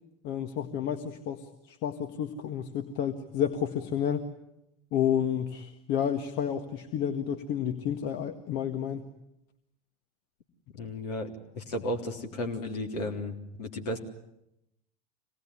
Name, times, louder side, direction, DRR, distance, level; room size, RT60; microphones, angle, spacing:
voice 1, 0.2-4.2 4.9-9.0, left 9 dB, 50° left, 6 dB, 1.8 m, -30 dB
voice 2, 10.7-14.0, left 1 dB, 70° left, 3 dB, 3.7 m, -34 dB
26.5 x 19.0 x 9.9 m, 0.84 s
figure-of-eight pair, 80°, 21 cm